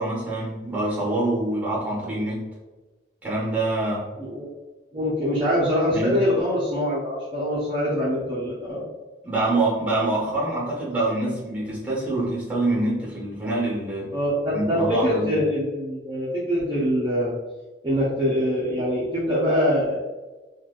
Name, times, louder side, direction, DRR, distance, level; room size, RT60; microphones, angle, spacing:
voice 1, 0.0-2.4 3.2-4.1 5.9-6.2 9.2-14.1 14.5-15.4, right 2 dB, 5° right, -6 dB, 1.0 m, -25 dB
voice 2, 4.9-8.9 14.1-17.3 17.8-20.0, equal, 25° right, -8 dB, 0.5 m, -24 dB
3.1 x 2.3 x 2.3 m, 1.2 s
head